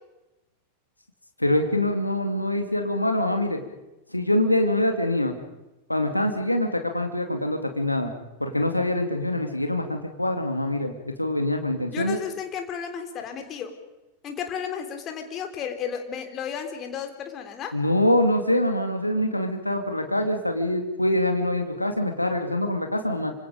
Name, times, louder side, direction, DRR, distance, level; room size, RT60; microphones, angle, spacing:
voice 1, 1.4-3.6 4.1-5.3 5.9-8.1 8.4-12.2 17.7-23.3, left 1 dB, 85° left, 5 dB, 2.4 m, -24 dB
voice 2, 11.9-13.7 14.2-17.8, left 7 dB, 30° left, 6 dB, 3.5 m, -33 dB
27.5 x 25.5 x 5.2 m, 1.0 s
figure-of-eight pair, 90°, 0 cm